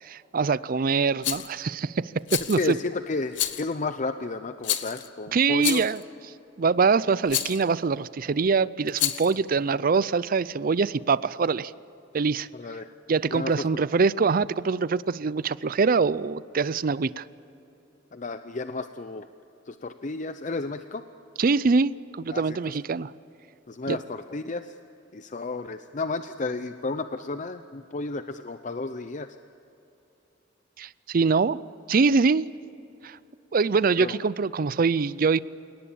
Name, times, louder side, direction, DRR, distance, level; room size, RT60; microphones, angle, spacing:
voice 1, 0.0-2.8 5.3-6.0 6.6-11.7 12.1-12.5 13.1-17.2 21.4-23.1 23.9-24.0 30.8-31.6 31.9-32.5 33.0-33.2 33.5-35.4, right 4 dB, 50° right, 18 dB, 0.5 m, -24 dB
Rattle, 1.2-1.5 2.3-2.7 3.3-3.7 4.6-5.1 5.6-6.0 7.3-7.6 8.9-9.4, left 12 dB, 85° left, 1.2 m, -29 dB
voice 2, 2.6-5.8 12.5-12.9 13.3-13.7 18.1-19.3 19.7-21.0 22.3-22.6 23.7-24.7 25.1-29.3 34.0-34.2, left 3 dB, 40° left, 10 dB, 0.6 m, -32 dB
29.0 x 18.0 x 8.6 m, 2.9 s
head